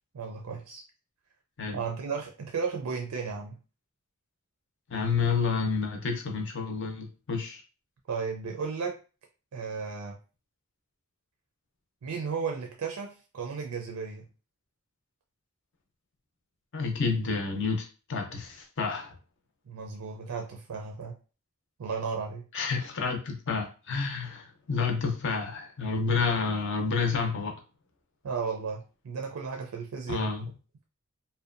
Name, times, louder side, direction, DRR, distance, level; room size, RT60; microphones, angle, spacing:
voice 1, 0.1-0.8 1.7-3.6 8.1-9.0 9.5-10.2 12.0-14.3 19.7-21.2 21.8-22.4 28.2-30.3, right 5 dB, 75° right, 2 dB, 0.4 m, -34 dB
voice 2, 4.9-7.6 16.7-19.1 22.5-27.5 30.1-30.5, left 4 dB, 55° left, 3 dB, 0.6 m, -29 dB
2.7 x 2.1 x 2.5 m, 0.34 s
head